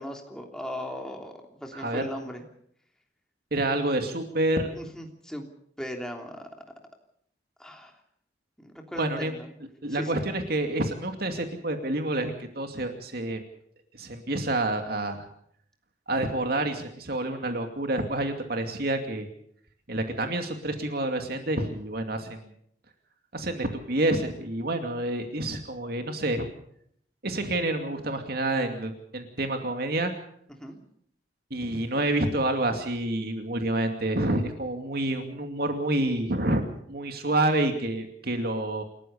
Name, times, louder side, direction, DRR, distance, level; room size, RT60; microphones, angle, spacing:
voice 1, 0.0-1.3 1.6-2.4 4.7-5.5 5.8-6.5 7.6-7.9 8.6-9.5 9.9-10.2 30.6-30.8, equal, 5° left, 2 dB, 3.2 m, -37 dB
voice 2, 1.7-2.1 3.5-4.7 8.9-9.3 9.8-13.4 13.9-15.2 16.1-19.3 19.9-22.5 23.3-26.5 27.2-30.1 31.5-38.8, right 1 dB, 60° right, 5 dB, 2.5 m, -28 dB
28.5 x 14.5 x 6.9 m, 0.68 s
head